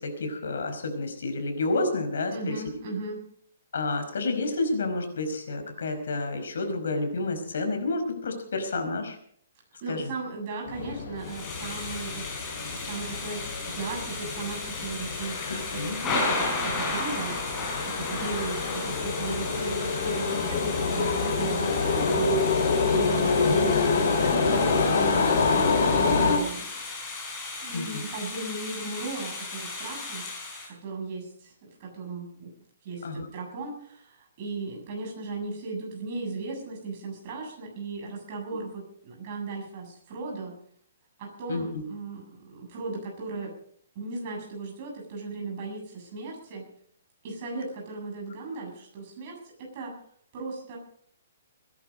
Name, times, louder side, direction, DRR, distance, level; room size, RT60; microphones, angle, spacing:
voice 1, 0.0-2.6 3.7-9.2 9.9-10.1 15.5-16.0 27.7-28.0 33.0-33.3 41.5-41.8, left 2 dB, 75° left, 6 dB, 5.0 m, -30 dB
voice 2, 2.3-3.2 9.8-17.4 17.9-22.3 22.9-26.7 27.6-30.3 30.7-32.5 32.8-40.5 41.2-43.5 44.0-46.7 47.2-49.9 50.3-50.8, right 3 dB, 30° right, -1 dB, 7.3 m, -37 dB
sound 1, 10.7-26.4, left 4 dB, 60° left, 4.5 m, -27 dB
Thunder / Rain, 11.2-30.7, left 3 dB, 15° left, 4.3 m, -35 dB
21.0 x 11.0 x 5.3 m, 0.63 s
hypercardioid pair, 170°, 0 cm